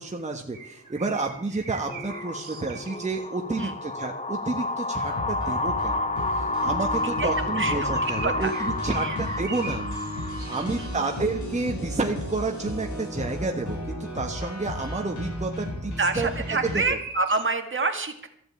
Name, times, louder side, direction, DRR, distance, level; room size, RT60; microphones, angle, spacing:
voice 1, 0.0-6.0 6.3-10.0 10.5-16.3 16.7-17.0, right 3 dB, 25° right, 2 dB, 1.5 m, -30 dB
sound 1, 0.5-17.5, right 5 dB, 85° right, 2.0 m, -45 dB
sound 2, 1.9-11.4, left 2 dB, 25° left, 1.0 m, -30 dB
sound 3, 5.0-16.8, equal, 75° left, 5.0 m, -34 dB
voice 2, 7.0-8.5 9.0-9.2 10.5-11.1 16.0-18.3, right 3 dB, 40° right, 6 dB, 2.0 m, -28 dB
14.5 x 7.7 x 8.8 m, 0.67 s
wide cardioid pair, 100°, 30 cm